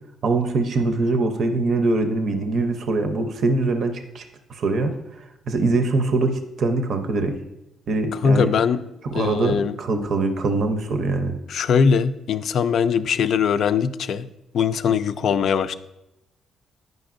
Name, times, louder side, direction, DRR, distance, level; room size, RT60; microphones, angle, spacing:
voice 1, 0.2-4.2 4.5-7.3 7.9-8.5 9.1-11.3, right 3 dB, 60° right, 6 dB, 0.6 m, -23 dB
voice 2, 8.2-8.8 9.1-9.8 11.5-14.3 14.5-15.7, left 6 dB, 65° left, 12 dB, 0.3 m, -21 dB
9.3 x 5.2 x 2.5 m, 0.88 s
cardioid pair, 90°, 0 cm